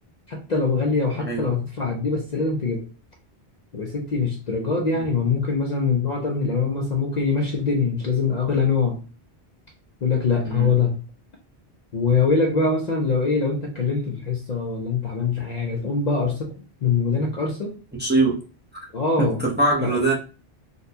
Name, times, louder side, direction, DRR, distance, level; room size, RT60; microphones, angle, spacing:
voice 1, 0.3-2.8 3.7-9.0 10.0-11.0 11.9-16.5 16.8-17.7 18.9-19.4 19.8-20.0, left 4 dB, 50° left, 0 dB, 0.6 m, -23 dB
voice 2, 1.1-1.5 4.9-5.0 10.4-10.7 18.0-18.4 18.7-18.8 19.2-20.1, right 2 dB, 10° right, -3 dB, 0.6 m, -22 dB
3.9 x 2.2 x 2.7 m, 0.35 s
omnidirectional pair, 1.1 m